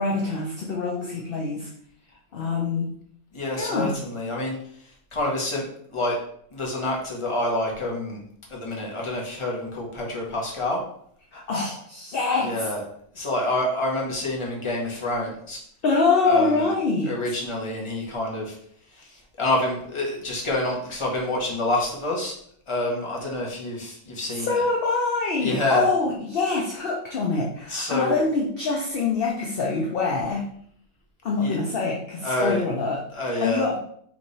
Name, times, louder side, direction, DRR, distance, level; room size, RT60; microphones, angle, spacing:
voice 1, 0.0-1.7 2.3-2.9 3.6-3.9 11.3-12.5 15.8-17.1 24.3-30.4 31.2-33.0 33.4-33.8, left 4 dB, 55° left, -1 dB, 0.6 m, -25 dB
voice 2, 3.3-4.6 5.1-5.6 5.9-6.2 6.5-8.2 8.5-10.8 12.4-12.8 13.1-15.6 16.2-16.7 17.1-18.6 18.9-22.4 22.7-24.7 25.4-25.9 27.7-28.2 31.4-31.6 32.2-32.6 33.1-33.7, left 1 dB, 25° left, -2 dB, 1.0 m, -27 dB
3.4 x 3.2 x 4.0 m, 0.65 s
omnidirectional pair, 1.6 m